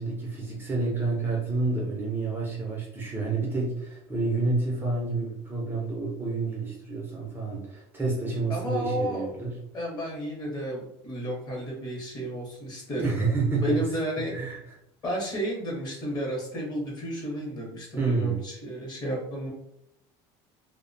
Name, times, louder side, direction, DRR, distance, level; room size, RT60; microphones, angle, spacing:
voice 1, 0.0-9.6 13.0-13.8 14.3-14.6 18.0-18.4, right 3 dB, 15° right, -3 dB, 0.4 m, -29 dB
voice 2, 8.5-9.3 9.7-13.3 13.6-14.3 15.0-19.5, equal, 30° left, -1 dB, 0.8 m, -32 dB
2.4 x 2.1 x 2.5 m, 0.77 s
cardioid pair, 150°, 13 cm